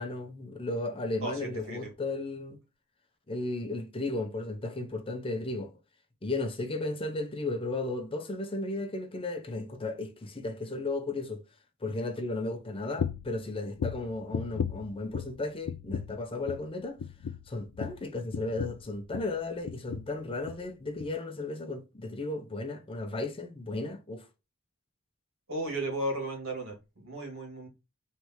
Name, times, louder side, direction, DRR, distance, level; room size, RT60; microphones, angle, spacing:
voice 1, 0.0-2.6 3.3-5.7 6.2-11.4 11.8-17.0 17.5-24.3, left 2 dB, 25° left, 0.7 m, -34 dB
voice 2, 1.2-1.9 25.5-27.7, right 1 dB, 70° right, 2.2 m, -35 dB
sound 1, 13.0-13.4 13.8-15.4 15.7-16.2 16.5-16.7 17.0-19.4 19.7-20.1 20.4-20.7 21.0-21.1, left 7 dB, 85° left, 0.3 m, -36 dB
4.7 x 3.3 x 2.9 m
head